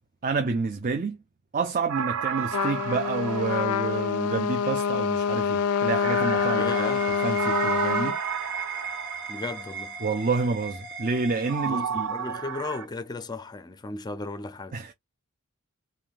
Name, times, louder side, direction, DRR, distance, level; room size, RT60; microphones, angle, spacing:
voice 1, 0.2-1.2 1.5-6.9 7.2-8.2 10.0-12.1 14.7-14.9, right 4 dB, 40° right, 0.5 m, -28 dB
sound 1, 1.9-4.7 6.0-9.8 11.5-12.8, right 7 dB, 85° right, 0.6 m, -32 dB
Trumpet, 2.5-8.2, left 7 dB, 80° left, 0.4 m, -26 dB
sound 2, 5.9-12.3, right 5 dB, 60° right, 1.4 m, -38 dB
voice 2, 6.5-7.1 9.3-10.0 11.7-14.8, left 3 dB, 20° left, 0.4 m, -35 dB
3.4 x 2.5 x 2.3 m
head